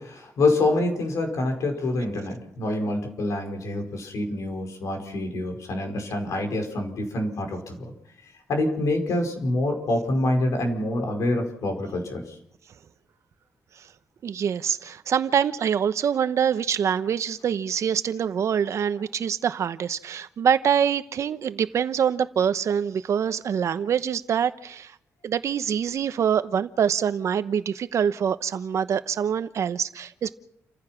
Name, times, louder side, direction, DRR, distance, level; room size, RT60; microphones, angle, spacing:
voice 1, 0.0-7.9 8.5-12.4, left 2 dB, 70° left, 4 dB, 5.1 m, -26 dB
voice 2, 14.2-24.9 25.2-30.3, right 8 dB, 60° right, 12 dB, 1.0 m, -25 dB
29.5 x 15.0 x 6.0 m, 0.74 s
wide cardioid pair, 140°, 6 cm